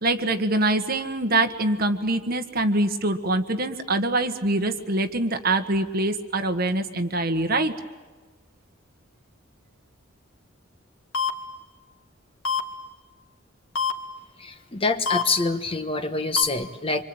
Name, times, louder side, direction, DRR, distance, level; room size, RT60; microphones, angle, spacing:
voice 1, 0.0-7.7, right 2 dB, 45° right, 7 dB, 1.7 m, -24 dB
sound 1, 11.1-11.3 12.4-12.6 13.8-13.9 15.1-15.2 16.4-16.5, left 6 dB, 80° left, 2.5 m, -24 dB
voice 2, 14.4-17.0, left 3 dB, 25° left, 8 dB, 1.3 m, -25 dB
26.0 x 25.5 x 8.9 m, 1.4 s
head